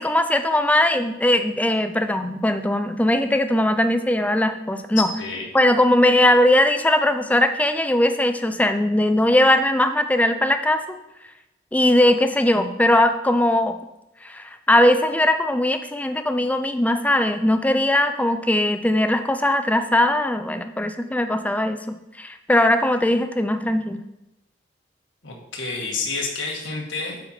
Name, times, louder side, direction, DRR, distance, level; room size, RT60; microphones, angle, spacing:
voice 1, 0.0-5.1 5.5-11.0 11.7-13.8 14.2-24.0, left 1 dB, 10° left, 9 dB, 0.4 m, -20 dB
voice 2, 5.0-5.5 25.2-27.2, left 4 dB, 85° left, -1 dB, 1.7 m, -29 dB
9.0 x 4.3 x 4.4 m, 0.93 s
head